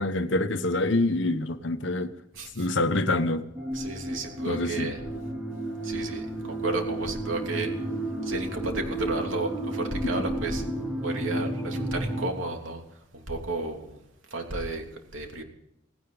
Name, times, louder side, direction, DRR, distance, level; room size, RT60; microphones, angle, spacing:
voice 1, 0.0-2.1 2.5-3.5 4.4-5.0 10.0-10.2, left 2 dB, 65° left, 1.1 m, -26 dB
sound 1, 3.5-12.3, right 1 dB, 10° right, 2.9 m, -32 dB
voice 2, 3.7-5.0 5.8-7.7 8.2-10.6 11.0-12.8 13.1-14.0 14.3-14.8 15.1-15.4, right 2 dB, 80° right, 3.1 m, -32 dB
17.5 x 17.0 x 4.0 m
head